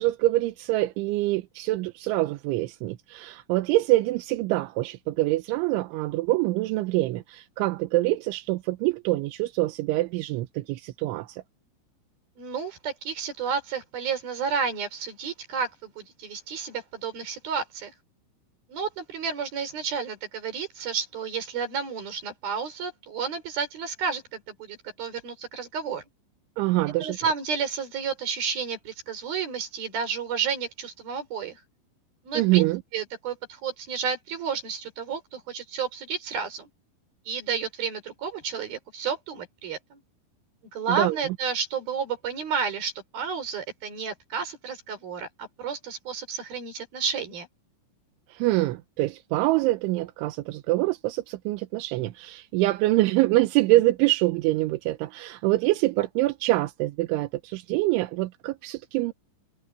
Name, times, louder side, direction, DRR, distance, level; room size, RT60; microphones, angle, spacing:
voice 1, 0.0-11.4 26.6-27.2 32.3-32.8 40.9-41.2 48.3-59.1, right 18 dB, 80° right, 3.2 m, -25 dB
voice 2, 12.4-17.9 18.7-26.0 27.0-31.6 32.2-32.6 32.9-36.7 37.3-40.0 40.7-47.5, right 6 dB, 50° right, 6.5 m, -31 dB
omnidirectional pair, 5.6 m